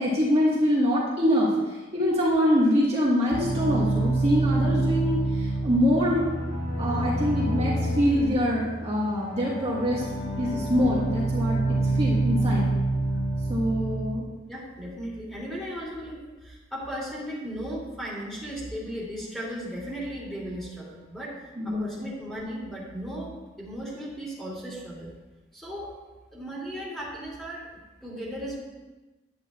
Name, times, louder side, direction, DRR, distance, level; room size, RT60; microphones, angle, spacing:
voice 1, 0.0-6.3 6.8-10.0 10.4-12.6 13.5-14.2 21.6-21.8, equal, 30° right, -7 dB, 1.6 m, -24 dB
sound 1, 3.3-14.1, right 2 dB, 80° left, 3.0 m, -27 dB
voice 2, 14.5-23.3 23.6-25.2 25.5-25.9 26.3-27.7 28.0-28.6, equal, ahead, -6 dB, 2.7 m, -36 dB
10.5 x 9.6 x 2.4 m, 1.2 s
head